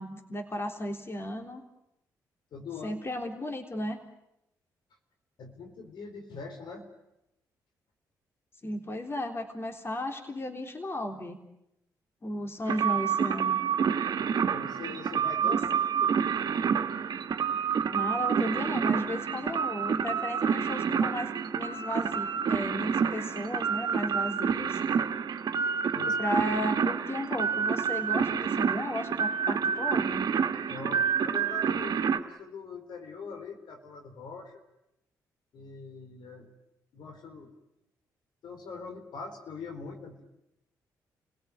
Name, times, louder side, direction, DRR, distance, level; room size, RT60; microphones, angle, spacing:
voice 1, 0.0-1.6 2.8-4.0 8.6-11.4 12.2-13.6 15.4-15.6 17.9-24.8 26.0-30.3, left 1 dB, 30° left, 4 dB, 3.6 m, -34 dB
voice 2, 2.5-3.0 5.4-6.9 14.5-15.6 15.9-16.5 25.9-26.1 30.7-34.6 35.5-36.5 36.9-37.5 38.4-40.2, left 4 dB, 75° left, 5 dB, 4.2 m, -43 dB
sound 1, 12.7-32.2, right 7 dB, 65° right, 1.6 m, -28 dB
29.5 x 17.5 x 9.7 m, 0.85 s
supercardioid pair, 65°, 8 cm